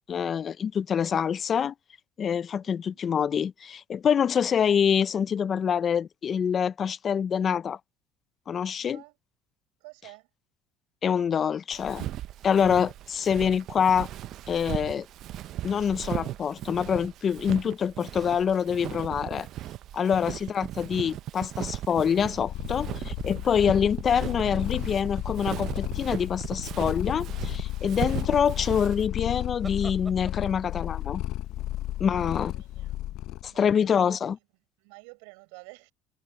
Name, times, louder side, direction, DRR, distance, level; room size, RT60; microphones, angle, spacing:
voice 1, 0.1-1.7 2.2-7.8 8.5-9.0 11.0-12.1 12.4-14.1 14.5-15.1 15.6-19.5 19.9-31.2 32.0-32.5 33.4-34.4, left 7 dB, 35° left, 0.3 m, -26 dB
voice 2, 2.6-3.0 8.8-9.2 9.8-10.3 20.2-20.8 32.0-33.0 33.4-34.2 34.8-35.9, right 34 dB, 90° right, 5.6 m, -51 dB
Walk footsteps, 11.7-29.1, right 13 dB, 55° right, 0.6 m, -37 dB
sound 1, 16.5-18.8 19.2-19.3 21.6-22.3 22.7-23.4 24.0-24.8 29.0-30.7, right 2 dB, 10° right, 3.2 m, -50 dB
Purr, 22.2-33.5, left 15 dB, 60° left, 0.7 m, -33 dB
cardioid pair, 130°, 0 cm